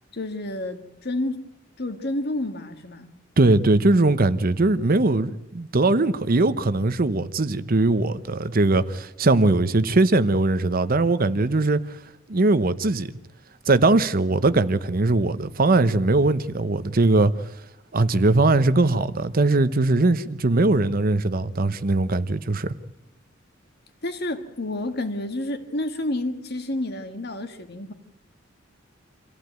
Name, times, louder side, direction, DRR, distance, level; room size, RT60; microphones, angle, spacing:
voice 1, 0.1-1.5 1.8-3.1 24.0-27.9, left 1 dB, 55° left, 1.9 m, -29 dB
voice 2, 3.4-12.0 12.3-13.1 13.7-17.3 17.9-22.7, right 2 dB, 45° right, 0.8 m, -20 dB
26.0 x 15.0 x 9.2 m
head